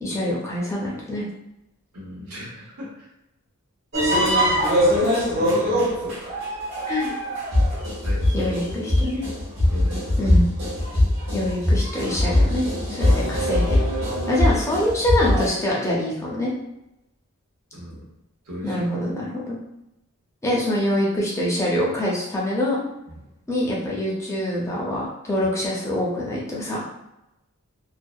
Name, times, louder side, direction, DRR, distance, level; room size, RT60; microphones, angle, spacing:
voice 1, 0.0-1.3 4.1-4.3 6.9-7.1 8.3-9.2 10.2-10.5 11.3-13.8 14.3-16.5 18.6-19.6 20.4-22.8 23.5-26.9, left 1 dB, 15° left, -4 dB, 0.4 m, -25 dB
voice 2, 1.9-3.1 5.1-6.4 8.0-9.3 9.7-10.3 13.0-13.4 17.7-18.1 18.4-18.9 23.1-23.2 25.4-25.5, equal, 85° right, -5 dB, 0.9 m, -38 dB
sound 1, 3.9-15.5, left 1 dB, 60° right, 1.0 m, -22 dB
2.6 x 2.1 x 2.3 m, 0.89 s
head